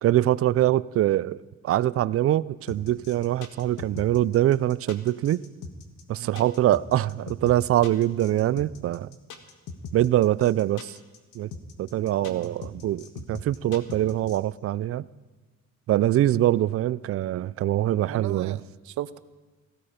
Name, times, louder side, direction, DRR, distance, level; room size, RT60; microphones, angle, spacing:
voice 1, 0.0-5.4 6.1-9.1 9.9-11.0 11.3-11.5 11.8-15.0 15.9-18.6, right 13 dB, 45° right, 0.4 m, -23 dB
sound 1, 2.7-14.4, left 5 dB, 70° left, 1.7 m, -40 dB
voice 2, 12.2-12.7 18.1-19.2, right 13 dB, 65° right, 0.8 m, -37 dB
17.0 x 15.5 x 5.1 m
cardioid pair, 125°, 32 cm